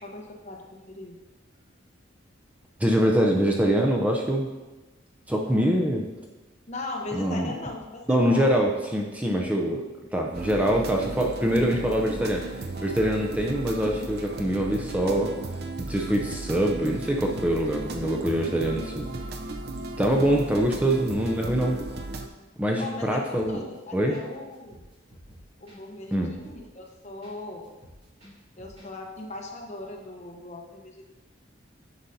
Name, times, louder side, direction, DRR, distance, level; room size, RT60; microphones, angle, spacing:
voice 1, 0.0-1.2 6.7-8.5 9.3-9.5 22.8-24.8 25.6-27.7 28.6-31.0, left 2 dB, 35° left, 0 dB, 1.0 m, -39 dB
voice 2, 2.8-4.5 5.3-6.1 7.1-7.5 8.1-9.8 10.1-12.5 12.8-15.3 15.8-19.0 20.0-21.8 22.6-23.6 23.9-24.2 26.1-26.3, equal, 10° right, 0 dB, 0.5 m, -24 dB
sound 1, 10.3-22.3, right 2 dB, 55° right, 0.6 m, -35 dB
sound 2, 23.3-23.8 24.1-24.3 24.5-27.4 27.6-28.9 29.1-29.2, equal, 35° right, 2.6 m, -51 dB
9.8 x 5.5 x 2.7 m, 1.1 s
head